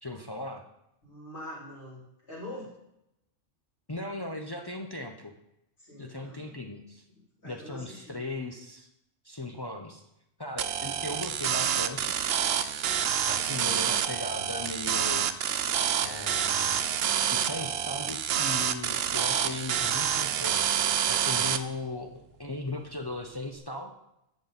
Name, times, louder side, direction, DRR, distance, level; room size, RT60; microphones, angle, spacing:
voice 1, 0.0-0.7 3.9-5.3 6.0-7.0 7.4-8.9 9.2-10.0 10.4-12.2 13.3-15.3 16.0-16.8 17.2-20.8 21.1-23.9, left 2 dB, 35° left, 3 dB, 0.4 m, -38 dB
voice 2, 1.0-2.7 5.8-6.6 7.1-8.2, left 1 dB, 55° left, -7 dB, 3.8 m, -44 dB
sound 1, 10.6-21.6, right 9 dB, 60° right, 0.7 m, -28 dB
11.0 x 7.2 x 4.0 m, 0.84 s
omnidirectional pair, 1.3 m